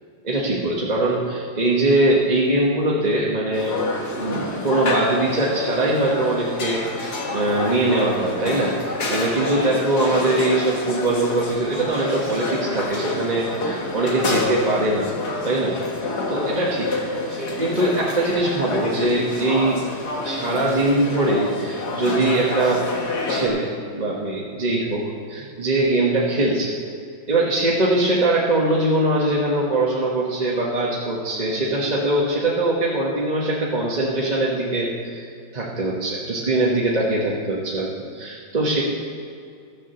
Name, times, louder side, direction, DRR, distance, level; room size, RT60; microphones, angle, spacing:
voice 1, 0.2-3.8 4.1-15.1 15.4-15.8 16.3-17.0 17.3-19.8 20.2-22.8 23.3-26.7 27.3-35.3 35.5-38.9, right 2 dB, 25° right, -4 dB, 1.1 m, -22 dB
sound 1, 3.5-23.5, left 2 dB, 50° left, 1.9 m, -28 dB
13.5 x 7.2 x 6.9 m, 2.4 s
omnidirectional pair, 2.3 m